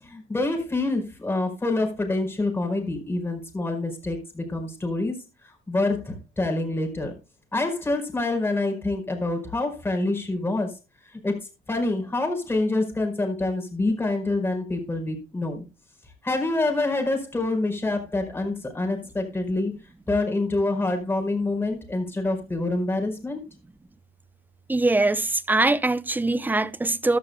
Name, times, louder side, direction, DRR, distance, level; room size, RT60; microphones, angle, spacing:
voice 1, 0.0-5.2 5.4-7.1 7.5-10.7 11.0-15.6 16.2-19.7 20.1-23.4, left 2 dB, 15° left, 5.0 m, -26 dB
voice 2, 24.7-27.2, right 2 dB, 10° right, 0.7 m, -22 dB
14.5 x 12.0 x 2.3 m
cardioid pair, 110°, 17 cm